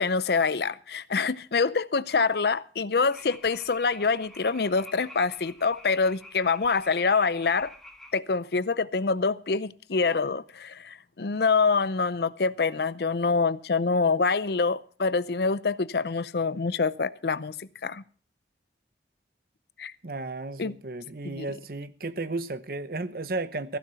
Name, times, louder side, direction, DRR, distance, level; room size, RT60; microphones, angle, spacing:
voice 1, 0.0-7.7 8.1-18.0 19.8-19.9 20.6-20.7 21.2-21.5, left 4 dB, 60° left, 0.6 m, -26 dB
sound 1, 3.1-8.2, left 1 dB, ahead, 1.5 m, -48 dB
voice 2, 20.0-23.8, right 2 dB, 55° right, 0.9 m, -33 dB
15.0 x 10.5 x 5.6 m
head